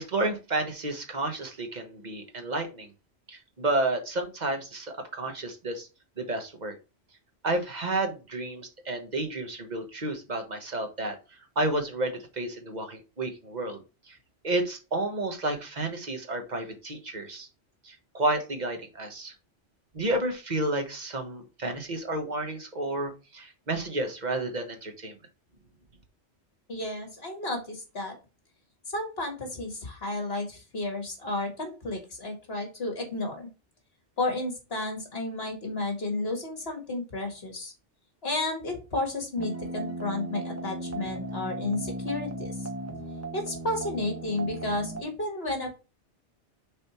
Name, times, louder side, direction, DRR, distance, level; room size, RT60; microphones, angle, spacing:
voice 1, 0.0-2.9 3.3-5.9 6.2-6.7 7.4-14.2 14.4-17.5 17.8-19.3 19.9-25.1, right 2 dB, 40° right, 5 dB, 1.4 m, -31 dB
voice 2, 26.7-28.2 28.9-33.5 34.2-37.7 38.2-42.7 43.3-45.7, left 2 dB, 60° left, 3 dB, 2.2 m, -32 dB
sound 1, 39.4-45.0, right 1 dB, 15° right, 1.1 m, -36 dB
6.7 x 4.1 x 4.4 m, 0.30 s
omnidirectional pair, 1.2 m